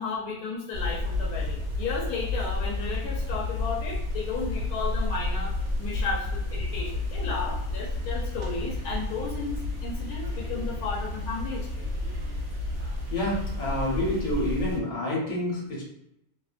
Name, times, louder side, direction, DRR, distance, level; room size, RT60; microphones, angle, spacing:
voice 1, 0.0-5.5 5.8-11.9, left 4 dB, 90° left, -3 dB, 1.2 m, -34 dB
sound 1, 0.7-14.8, left 2 dB, 60° right, 0.9 m, -31 dB
voice 2, 13.1-15.8, left 1 dB, 60° left, -4 dB, 1.3 m, -28 dB
2.9 x 2.1 x 2.4 m, 0.81 s
omnidirectional pair, 1.6 m